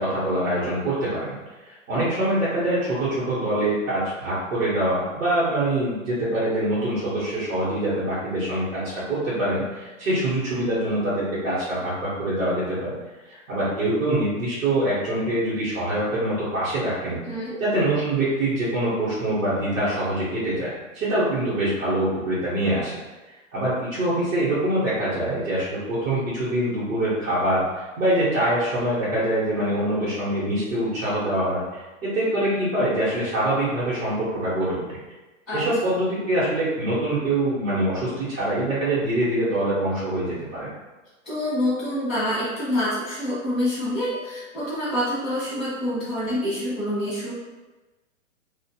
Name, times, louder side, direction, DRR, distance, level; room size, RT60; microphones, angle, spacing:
voice 1, 0.0-1.3 1.6-8.8 9.1-12.9 13.2-17.2 17.6-23.0 23.5-34.8 35.5-40.7, right 1 dB, 85° right, -10 dB, 1.1 m, -24 dB
voice 2, 17.2-17.6 35.5-35.6 41.2-47.3, left 1 dB, ahead, -18 dB, 0.3 m, -26 dB
2.4 x 2.3 x 2.8 m, 1.2 s
hypercardioid pair, 155°, 39 cm